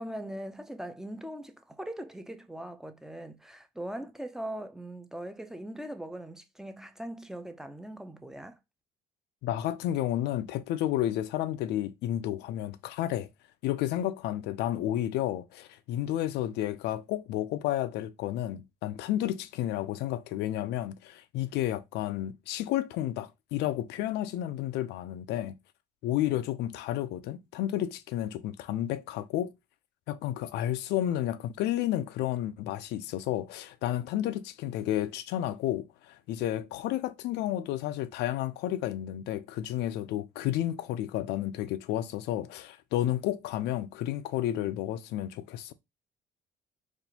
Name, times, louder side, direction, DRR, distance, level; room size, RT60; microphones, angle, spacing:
voice 1, 0.0-8.6, right 1 dB, 5° right, 0.4 m, -40 dB
voice 2, 9.4-13.3 13.6-25.5 26.0-29.5 30.1-45.7, left 13 dB, 80° left, 0.4 m, -31 dB
4.2 x 2.5 x 2.7 m
cardioid pair, 110°, 17 cm